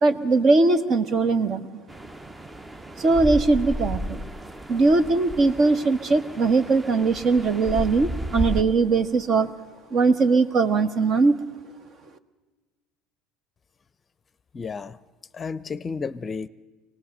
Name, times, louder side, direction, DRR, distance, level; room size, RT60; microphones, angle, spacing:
voice 1, 0.0-1.7 3.0-4.2 4.7-9.5 9.9-11.3, right 3 dB, 45° right, 11 dB, 1.3 m, -20 dB
sound 1, 1.9-8.6, equal, 15° right, 0.8 m, -33 dB
voice 2, 14.5-15.0 15.3-16.5, left 5 dB, 30° left, 16 dB, 0.6 m, -32 dB
23.0 x 18.5 x 6.7 m, 1.3 s
hypercardioid pair, 80°, 0 cm